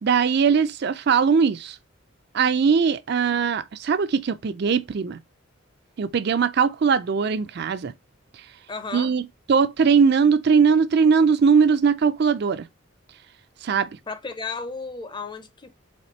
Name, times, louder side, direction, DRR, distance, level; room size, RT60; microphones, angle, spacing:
voice 1, 0.0-1.8 2.3-5.2 6.0-7.9 8.9-12.6 13.6-13.9, right 6 dB, 50° right, 0.4 m, -20 dB
voice 2, 8.7-9.1 14.1-15.7, left 4 dB, 20° left, 0.6 m, -34 dB
4.3 x 3.5 x 3.1 m
head